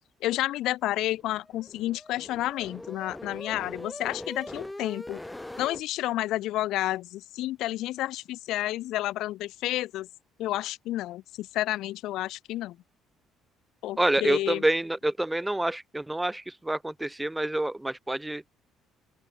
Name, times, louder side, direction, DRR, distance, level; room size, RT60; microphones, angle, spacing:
voice 1, 0.2-5.2 5.6-10.1 10.4-12.8 13.8-14.6, left 15 dB, 55° left, 0.4 m, -30 dB
sound 1, 1.1-5.8, left 1 dB, 10° left, 2.5 m, -42 dB
voice 2, 14.0-18.4, right 1 dB, 10° right, 0.5 m, -27 dB
open air
figure-of-eight pair, 50°, 0 cm